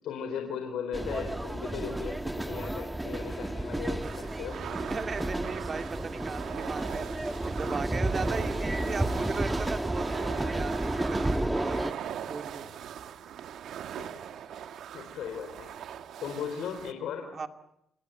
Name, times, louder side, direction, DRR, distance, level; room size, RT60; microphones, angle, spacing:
voice 1, 0.0-4.6 14.0-14.1 14.4-14.5 14.9-15.7 16.2-17.3, left 7 dB, 80° left, 4 dB, 4.1 m, -37 dB
sound 1, 0.9-11.9, right 1 dB, 10° right, 1.4 m, -32 dB
sound 2, 4.0-16.9, right 9 dB, 70° right, 1.5 m, -40 dB
voice 2, 4.5-12.0 12.3-12.7 17.3-17.5, right 4 dB, 35° right, 8 dB, 2.3 m, -37 dB
28.0 x 20.5 x 9.2 m, 0.81 s
cardioid pair, 90°, 0 cm